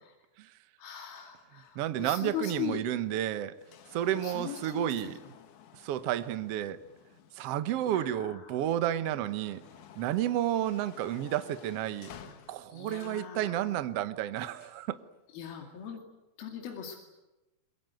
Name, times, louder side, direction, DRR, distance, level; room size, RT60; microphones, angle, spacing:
voice 1, 0.8-2.8 4.1-5.1 7.8-8.6 12.7-13.7 15.3-16.0 16.4-17.0, left 8 dB, 75° left, 1 dB, 4.2 m, -40 dB
sound 1, 1.1-8.3 8.8-13.4 14.3-14.9 15.8-15.9, left 9 dB, 60° left, 2.6 m, -54 dB
voice 2, 1.7-3.6 3.9-5.2 5.7-6.8 7.3-9.6 9.9-15.0, right 12 dB, 80° right, 12 dB, 1.3 m, -31 dB
24.0 x 22.0 x 9.4 m, 1.0 s
omnidirectional pair, 4.3 m